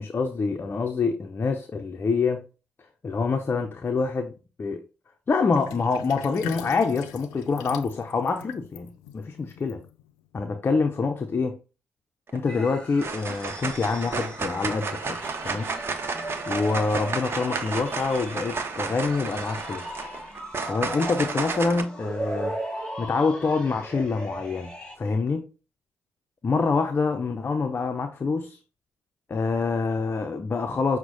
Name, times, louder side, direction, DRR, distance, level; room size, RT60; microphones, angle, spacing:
voice 1, 0.0-2.4 3.0-4.3 4.6-4.8 5.3-9.8 10.3-11.6 12.3-15.7 16.5-20.0 20.7-22.5 23.0-25.5 26.4-28.6 29.3-31.0, left 4 dB, 40° left, 0.6 m, -26 dB
Sink (filling or washing), 5.5-10.3, left 11 dB, 90° left, 0.4 m, -42 dB
sound 1, 12.3-12.7 13.0-21.8, right 4 dB, 45° right, 0.9 m, -32 dB
sound 2, 12.5-25.0, right 1 dB, 15° left, 1.9 m, -38 dB
6.0 x 2.2 x 3.9 m
hypercardioid pair, 50°, 6 cm